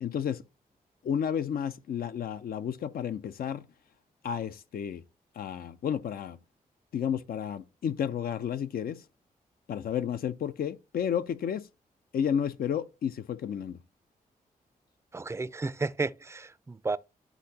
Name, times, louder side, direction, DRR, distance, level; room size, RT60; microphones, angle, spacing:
voice 1, 0.0-0.4 1.0-3.6 4.2-5.0 5.4-6.4 6.9-9.0 9.7-11.7 12.1-13.8, left 8 dB, 80° left, 0.5 m, -31 dB
voice 2, 15.1-17.0, right 3 dB, 20° right, 0.4 m, -32 dB
11.5 x 3.8 x 2.8 m
cardioid pair, 65°, 15 cm